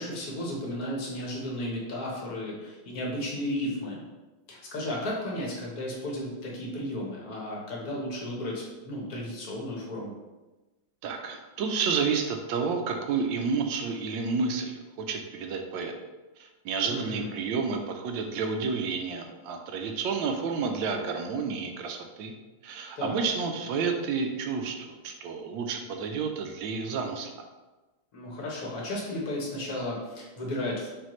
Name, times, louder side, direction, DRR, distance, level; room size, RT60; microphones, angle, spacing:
voice 1, 0.0-4.0 4.5-10.1 16.9-17.3 23.0-23.3 28.1-30.9, left 1 dB, 55° left, -3 dB, 1.2 m, -34 dB
voice 2, 11.0-15.9 16.4-22.3 22.6-27.4, right 5 dB, 75° right, 4 dB, 1.2 m, -30 dB
5.2 x 2.7 x 3.0 m, 1.1 s
omnidirectional pair, 2.3 m